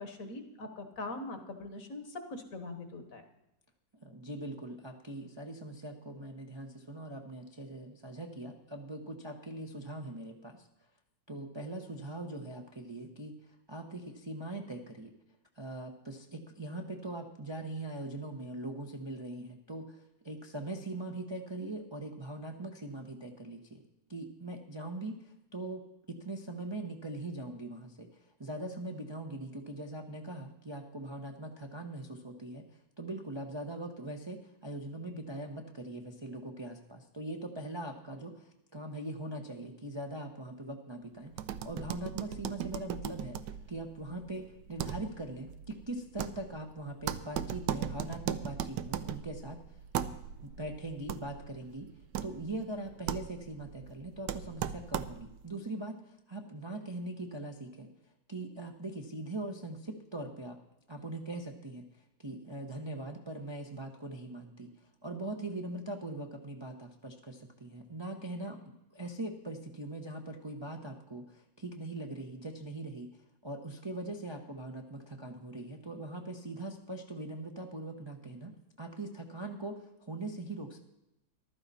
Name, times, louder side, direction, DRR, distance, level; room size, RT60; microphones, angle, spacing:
voice 1, 0.0-3.2, left 2 dB, 50° left, 7 dB, 1.5 m, -42 dB
voice 2, 4.0-10.7 11.3-13.4 13.7-15.1 15.6-23.8 24.1-32.6 33.0-41.4 41.6-49.6 50.4-51.9 52.2-57.9 58.3-60.6 60.9-61.8 62.2-64.7 65.0-73.1 73.4-80.8, right 2 dB, 25° right, 2 dB, 0.6 m, -41 dB
sound 1, 41.3-55.4, right 9 dB, 80° right, 1.2 m, -39 dB
14.5 x 12.0 x 4.1 m, 0.92 s
omnidirectional pair, 2.0 m